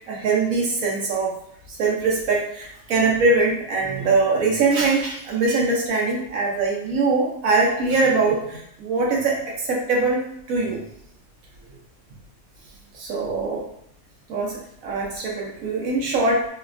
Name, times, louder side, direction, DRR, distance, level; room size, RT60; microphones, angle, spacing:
voice 1, 0.1-1.3 1.7-10.2 10.5-10.8 12.9-13.6 14.3-16.4, right 3 dB, 75° right, -2 dB, 1.2 m, -22 dB
3.2 x 2.3 x 2.4 m, 0.69 s
omnidirectional pair, 1.5 m